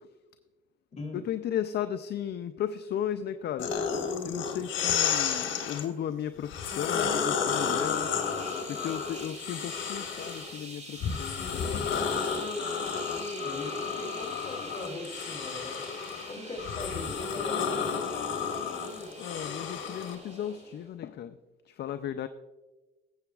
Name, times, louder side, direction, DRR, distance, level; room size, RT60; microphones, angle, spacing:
voice 1, 1.1-3.7 4.2-8.1 8.7-12.1 19.2-21.4 21.7-22.3, left 10 dB, 55° left, 11 dB, 0.4 m, -35 dB
sound 1, 3.6-5.8 6.4-10.5 11.0-20.1, left 6 dB, 75° left, 1.4 m, -32 dB
sound 2, 7.5-20.9, right 2 dB, 35° right, 3.6 m, -45 dB
voice 2, 13.2-15.8 16.3-17.7, left 2 dB, 35° left, 1 dB, 2.8 m, -40 dB
17.0 x 7.8 x 2.4 m, 1.2 s
cardioid pair, 90°, 20 cm